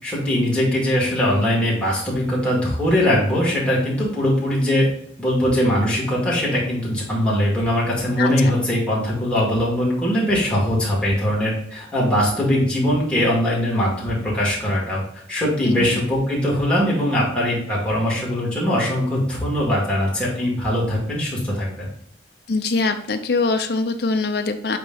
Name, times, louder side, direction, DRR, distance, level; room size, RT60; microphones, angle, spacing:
voice 1, 0.0-4.9 5.2-15.0 15.3-21.9, equal, 5° left, -6 dB, 2.1 m, -21 dB
voice 2, 15.6-16.0 22.5-24.8, left 3 dB, 60° left, 6 dB, 0.5 m, -23 dB
8.5 x 3.0 x 3.9 m, 0.68 s
head